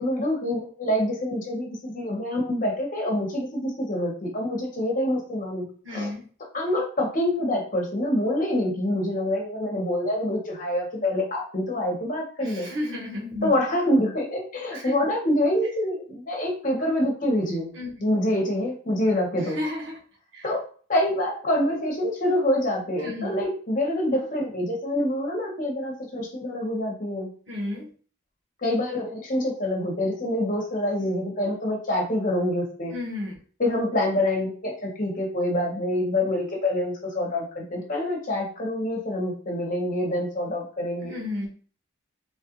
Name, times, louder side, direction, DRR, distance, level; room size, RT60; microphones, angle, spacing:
voice 1, 0.0-5.6 5.9-6.1 6.5-12.7 13.4-17.7 18.0-19.6 20.4-20.6 20.9-27.3 28.6-32.9 33.6-41.1, left 1 dB, 45° left, -1 dB, 1.0 m, -26 dB
voice 2, 5.8-6.2 12.4-13.5 14.7-14.9 17.7-17.9 19.5-20.0 20.3-20.4 23.0-23.4 27.5-27.9 32.9-33.4 41.0-41.5, left 1 dB, 80° right, -4 dB, 1.3 m, -32 dB
3.2 x 2.4 x 2.9 m, 0.43 s
head